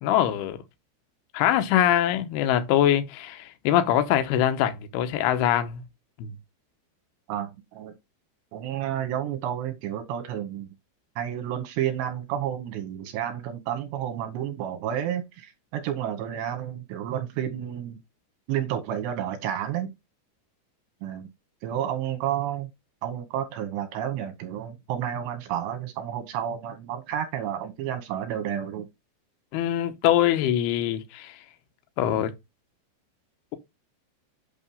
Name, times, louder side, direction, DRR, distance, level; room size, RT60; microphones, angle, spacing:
voice 1, 0.0-0.6 1.3-5.8 6.2-6.3 29.5-31.4 32.0-32.3, left 11 dB, 80° left, 2.4 m, -23 dB
voice 2, 7.3-7.9 8.5-10.7 11.2-18.0 18.5-19.9 21.0-21.3 21.6-22.7 23.0-28.9, right 10 dB, 75° right, 2.9 m, -31 dB
8.5 x 2.9 x 5.3 m
omnidirectional pair, 5.4 m